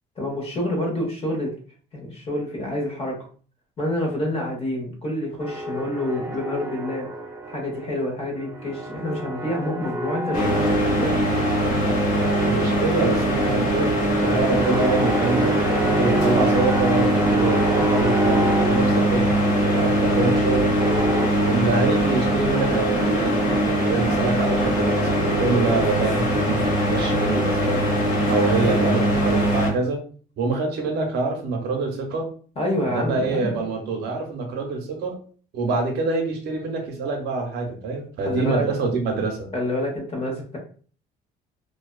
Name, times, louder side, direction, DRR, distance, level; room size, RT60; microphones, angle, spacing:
voice 1, 0.2-1.5 1.9-3.2 3.8-7.1 7.5-11.2 32.6-33.5 38.2-38.7 39.5-40.6, left 1 dB, 35° left, -1 dB, 1.0 m, -27 dB
sound 1, 5.4-7.9 8.2-11.8 12.1-21.3, right 1 dB, 20° right, 0.5 m, -30 dB
sound 2, 10.3-29.7, right 1 dB, 80° left, 1.3 m, -21 dB
voice 2, 12.5-20.7 21.3-30.0 30.4-32.3 32.9-35.2 35.5-39.5, right 3 dB, 75° right, 2 dB, 0.8 m, -25 dB
2.6 x 2.3 x 2.2 m, 0.42 s
cardioid pair, 110°, 17 cm